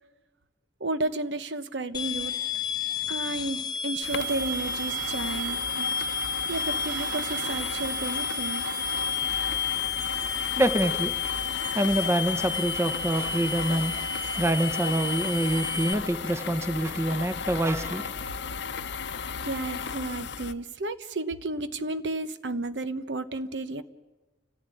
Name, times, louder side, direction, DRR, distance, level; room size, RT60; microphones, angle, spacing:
voice 1, 0.8-2.4 3.1-8.6 19.4-23.8, right 2 dB, 75° right, 1.0 m, -32 dB
sound 1, 1.9-15.9, left 4 dB, 25° left, 1.0 m, -31 dB
sound 2, 4.0-20.5, left 5 dB, 70° left, 0.7 m, -35 dB
voice 2, 10.6-11.2 11.7-18.2, right 1 dB, 15° right, 1.0 m, -26 dB
30.0 x 14.5 x 9.2 m
head